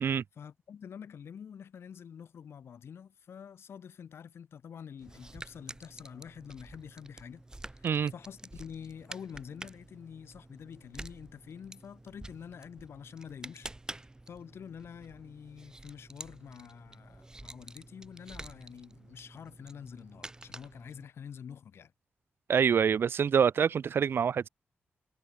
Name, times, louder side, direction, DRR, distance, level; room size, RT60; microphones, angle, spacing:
voice 1, 0.4-7.4 7.7-21.9, left 7 dB, 80° left, 7.3 m, -47 dB
sound 1, 5.0-21.1, right 2 dB, 15° right, 1.4 m, -49 dB
voice 2, 22.5-24.5, right 7 dB, 65° right, 0.5 m, -26 dB
wide cardioid pair, 100°, 4 cm